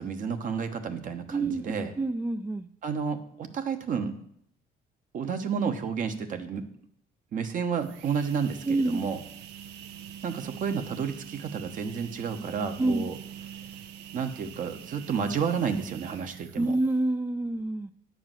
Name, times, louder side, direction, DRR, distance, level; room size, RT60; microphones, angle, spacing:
voice 1, 0.0-1.9 2.8-4.1 5.1-6.6 7.3-9.2 10.2-13.1 14.1-16.7, right 6 dB, 50° right, 7 dB, 1.1 m, -31 dB
voice 2, 1.3-2.7 8.6-9.0 12.8-13.0 16.6-17.9, right 2 dB, 10° right, 10 dB, 0.3 m, -27 dB
sound 1, 7.8-17.1, right 9 dB, 90° right, 0.7 m, -44 dB
10.0 x 4.8 x 7.5 m, 0.69 s
cardioid pair, 110°, 17 cm